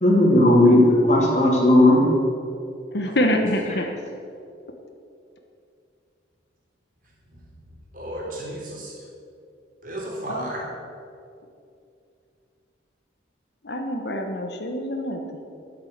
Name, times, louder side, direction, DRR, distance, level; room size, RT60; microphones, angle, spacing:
voice 1, 0.0-2.1, left 1 dB, 35° left, -3 dB, 2.8 m, -15 dB
voice 2, 2.9-3.9 10.3-10.5 13.6-15.2, left 1 dB, 55° left, 4 dB, 1.1 m, -25 dB
voice 3, 7.9-9.0 9.8-10.6, right 1 dB, 45° right, -3 dB, 3.6 m, -33 dB
12.0 x 8.2 x 8.0 m, 2.5 s
head